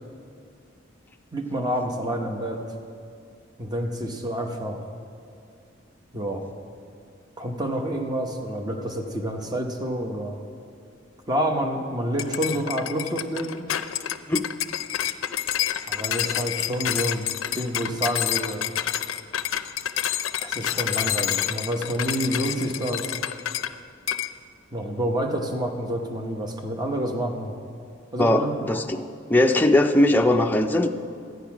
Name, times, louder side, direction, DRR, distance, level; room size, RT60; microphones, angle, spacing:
voice 1, 1.3-2.6 3.6-4.8 6.1-6.5 7.4-10.4 11.3-13.6 15.9-17.3 17.5-18.7 20.4-23.2 24.7-27.5 28.1-28.6, right 1 dB, 20° right, 2 dB, 0.9 m, -28 dB
sound 1, 12.2-23.7 24.1-24.3, left 11 dB, 80° left, 0.4 m, -28 dB
voice 2, 28.2-30.9, left 1 dB, 10° left, 5 dB, 0.4 m, -20 dB
12.0 x 9.3 x 6.0 m, 2.4 s
head